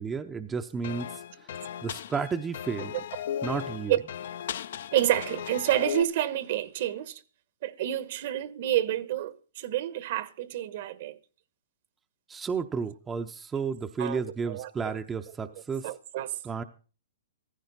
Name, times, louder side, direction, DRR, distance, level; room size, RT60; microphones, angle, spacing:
voice 1, 0.0-2.9 3.4-4.0 12.3-15.9 16.4-16.6, right 5 dB, 10° right, 0.7 m, -32 dB
sound 1, 0.8-6.0, left 9 dB, 60° left, 0.7 m, -36 dB
voice 2, 4.9-7.2 7.6-11.2 14.0-15.0 15.8-16.4, right 13 dB, 50° right, 1.1 m, -29 dB
15.5 x 15.0 x 4.1 m
hypercardioid pair, 160°, 0 cm